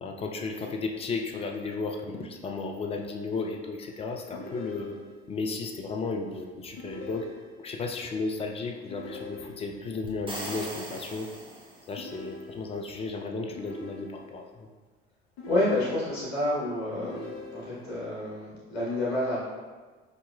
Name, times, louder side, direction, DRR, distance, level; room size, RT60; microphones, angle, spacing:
voice 1, 0.0-5.0 5.3-7.3 7.6-11.3 11.9-14.7, left 3 dB, 20° left, 3 dB, 0.3 m, -34 dB
sound 1, 4.3-5.4 6.8-7.8 8.9-9.9 12.0-13.0 13.6-14.5 15.4-16.4 17.0-18.0, left 2 dB, 45° left, 0.7 m, -43 dB
sound 2, 10.1-12.1, right 1 dB, 15° right, 0.7 m, -39 dB
voice 2, 15.5-19.4, left 1 dB, 75° left, -7 dB, 1.0 m, -29 dB
5.1 x 2.8 x 2.2 m, 1.4 s
figure-of-eight pair, 55°, 33 cm